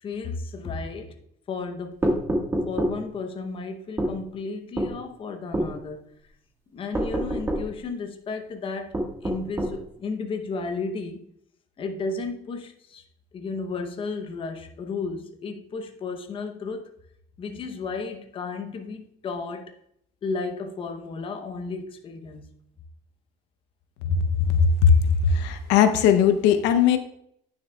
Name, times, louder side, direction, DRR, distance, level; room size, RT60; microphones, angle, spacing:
voice 1, 0.0-1.1 1.5-2.0 2.7-6.0 6.7-11.2 11.8-13.0 13.3-16.9 17.4-19.7 20.2-22.5, left 4 dB, 30° left, 5 dB, 0.8 m, -33 dB
sound 1, 2.0-3.0 4.0-4.2 4.8-4.9 5.5-5.7 6.9-7.7 8.9-9.8, right 1 dB, 15° right, 1.5 m, -26 dB
voice 2, 24.0-25.0 25.2-27.0, left 7 dB, 90° left, 8 dB, 0.7 m, -19 dB
9.4 x 6.5 x 2.3 m, 0.69 s
cardioid pair, 150°, 18 cm